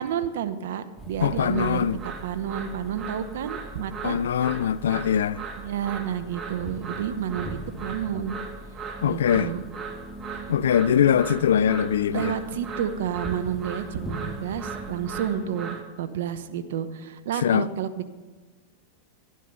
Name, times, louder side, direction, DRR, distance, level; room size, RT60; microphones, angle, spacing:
voice 1, 0.0-1.9 2.2-4.2 5.6-8.4 9.0-9.6 12.1-17.9, right 9 dB, 70° right, 0.9 m, -30 dB
sound 1, 1.0-15.4, left 1 dB, ahead, 2.1 m, -43 dB
voice 2, 1.2-2.0 4.0-5.4 9.0-9.5 10.5-12.3 17.4-17.7, left 9 dB, 80° left, 0.4 m, -22 dB
sound 2, 1.2-15.8, right 4 dB, 30° right, 1.7 m, -38 dB
12.0 x 11.0 x 5.5 m
hypercardioid pair, 105°, 0 cm